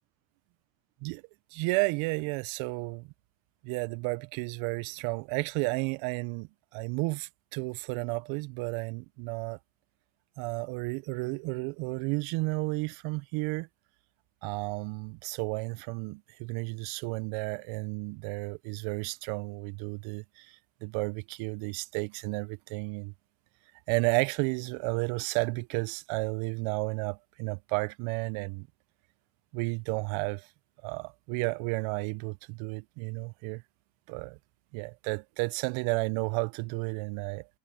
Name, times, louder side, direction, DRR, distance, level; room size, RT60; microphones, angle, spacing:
voice 1, 1.5-3.1 3.6-9.6 10.4-13.7 14.4-20.6 20.8-23.1 23.9-28.7 29.5-30.5 30.8-33.6 34.1-34.4 34.7-37.5, right 28 dB, 85° right, 0.6 m, -32 dB
cardioid pair, 135°, 47 cm